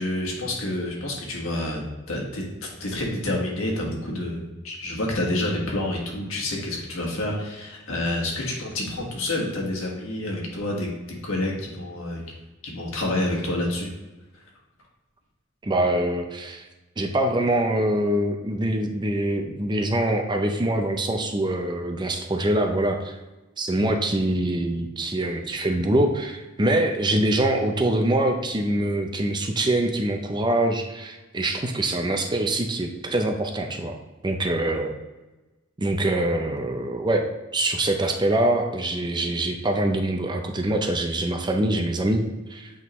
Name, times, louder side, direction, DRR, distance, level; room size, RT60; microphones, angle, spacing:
voice 1, 0.0-1.8 2.1-10.9 11.2-12.2 12.6-13.9, left 1 dB, 85° left, -1 dB, 1.6 m, -28 dB
voice 2, 15.6-16.6 17.0-23.2 23.6-34.0 34.2-35.0 35.8-37.3 37.5-42.7, right 1 dB, 20° right, 4 dB, 0.5 m, -24 dB
8.3 x 3.7 x 3.1 m, 1.1 s
head